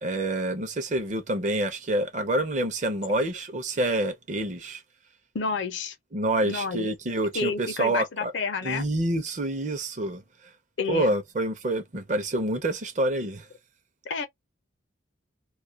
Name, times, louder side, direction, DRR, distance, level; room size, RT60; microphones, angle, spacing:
voice 1, 0.0-4.8 6.1-8.3 8.6-10.2 10.9-13.5, right 1 dB, 40° right, 0.6 m, -27 dB
voice 2, 5.3-6.0 6.4-6.9 7.3-8.8 10.8-11.1 14.0-14.3, left 4 dB, 75° left, 0.6 m, -29 dB
2.3 x 2.1 x 2.7 m
head